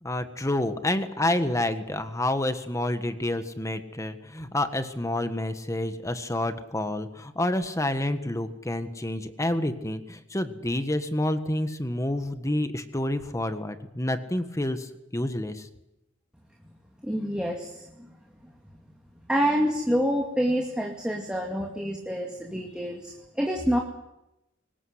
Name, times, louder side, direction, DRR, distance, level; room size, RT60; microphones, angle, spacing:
voice 1, 0.0-15.7, left 1 dB, 15° left, 9 dB, 1.5 m, -28 dB
voice 2, 17.0-18.1 18.4-18.5 19.3-23.8, equal, 5° right, 0 dB, 2.3 m, -27 dB
23.5 x 19.5 x 8.0 m, 0.89 s
head